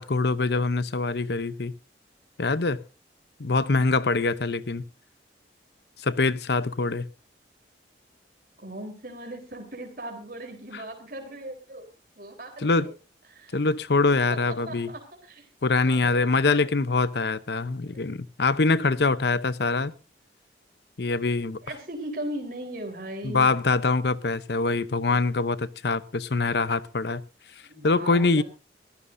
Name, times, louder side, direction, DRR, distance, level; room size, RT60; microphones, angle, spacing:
voice 1, 0.0-1.7 2.4-2.8 3.4-4.8 6.0-7.1 12.6-12.9 13.5-14.9 15.6-19.9 21.0-21.6 23.2-27.2 27.8-28.4, left 3 dB, 65° left, 0.8 m, -24 dB
voice 2, 8.6-11.9 12.2-12.9 13.3-13.6 14.5-16.7 17.9-18.0 21.6-23.5 27.6-28.4, right 1 dB, 50° right, 3.9 m, -38 dB
22.5 x 14.5 x 2.6 m
head